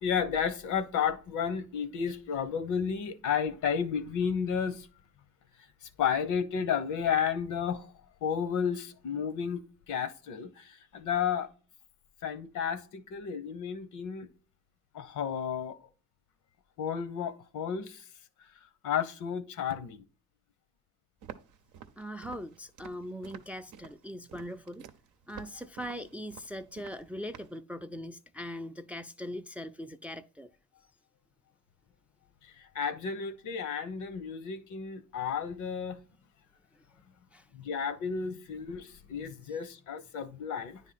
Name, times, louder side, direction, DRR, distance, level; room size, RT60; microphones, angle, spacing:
voice 1, 0.0-4.9 6.0-7.9 8.2-9.6 9.9-11.5 12.2-14.3 14.9-15.8 16.8-18.0 18.8-20.0 32.7-36.0 37.5-40.8, left 7 dB, 75° left, 0.9 m, -32 dB
Walk footsteps, 21.2-27.6, right 9 dB, 85° right, 0.7 m, -50 dB
voice 2, 22.0-24.9 25.3-30.5 37.3-37.5 39.5-39.6, equal, 5° right, 0.3 m, -41 dB
9.6 x 3.6 x 4.1 m
cardioid pair, 90°, 30 cm